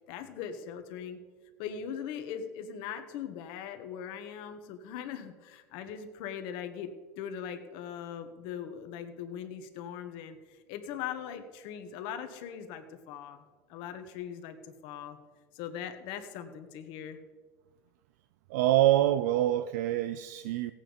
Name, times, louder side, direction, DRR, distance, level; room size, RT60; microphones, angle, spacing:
voice 1, 0.1-1.2 1.6-13.4 13.7-15.2 15.5-17.2, left 8 dB, 65° left, 1.6 m, -40 dB
voice 2, 18.5-20.7, right 13 dB, 80° right, 0.5 m, -25 dB
16.0 x 8.6 x 5.3 m
supercardioid pair, 120°, 9 cm